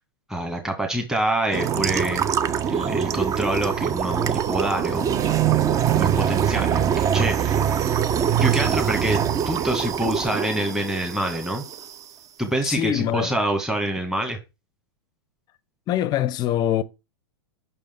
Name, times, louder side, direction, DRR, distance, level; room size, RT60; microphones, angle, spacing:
voice 1, 0.3-2.2 2.7-5.2 5.9-7.6 8.4-11.6 12.4-14.4, right 1 dB, 5° right, 1.3 m, -26 dB
sound 1, 1.5-11.9, right 9 dB, 25° right, 0.5 m, -23 dB
voice 2, 12.6-13.3 15.9-16.8, left 11 dB, 30° left, 0.5 m, -23 dB
5.8 x 5.2 x 3.6 m
hypercardioid pair, 105°, 13 cm